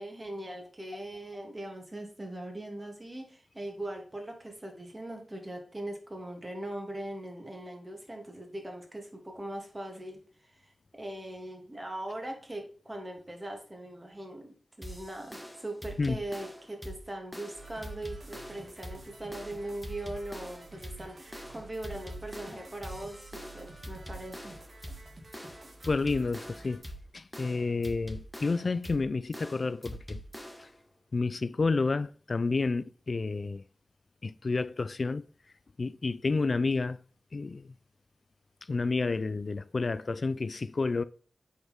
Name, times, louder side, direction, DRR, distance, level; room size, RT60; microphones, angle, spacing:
voice 1, 0.0-14.5 14.8-24.5, right 1 dB, 30° right, 2.8 m, -40 dB
sound 1, 14.8-30.8, equal, ahead, 1.6 m, -44 dB
sound 2, 17.5-26.8, right 2 dB, 50° right, 2.5 m, -51 dB
voice 2, 25.9-26.8 27.1-30.2 30.6-30.7 31.1-33.6 34.2-35.2 35.8-37.0 37.3-37.7 38.7-41.0, left 3 dB, 55° left, 0.4 m, -30 dB
8.1 x 4.7 x 3.6 m
cardioid pair, 40°, 0 cm